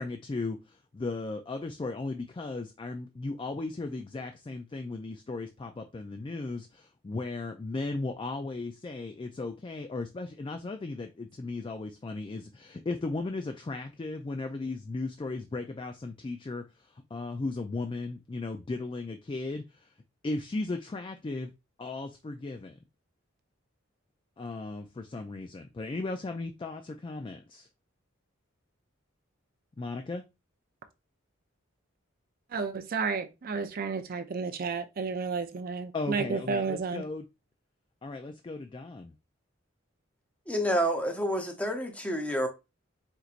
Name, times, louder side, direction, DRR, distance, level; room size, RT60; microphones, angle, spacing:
voice 1, 0.0-19.9 20.2-21.5 21.8-22.8 24.4-27.7 29.8-30.2 35.9-37.3 38.0-39.1, left 3 dB, 25° left, 0.3 m, -36 dB
voice 2, 32.5-37.0, right 5 dB, 45° right, 0.5 m, -32 dB
voice 3, 40.5-42.5, equal, 5° left, 0.7 m, -28 dB
4.4 x 3.9 x 2.5 m
head